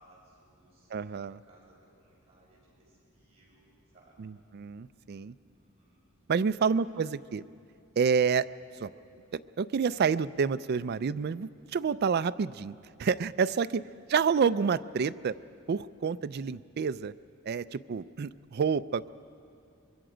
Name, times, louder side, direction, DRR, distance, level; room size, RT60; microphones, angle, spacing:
voice 1, 0.0-4.3 5.5-6.0 6.5-6.9 13.4-13.8, right 1 dB, 30° right, -5 dB, 5.5 m, -63 dB
voice 2, 0.9-1.4 4.2-5.3 6.3-7.4 8.0-8.5 8.8-8.9 9.3-13.8 14.1-15.4 15.7-17.1 17.4-19.1, right 6 dB, 50° right, 13 dB, 0.4 m, -29 dB
24.5 x 22.5 x 5.0 m, 2.5 s
head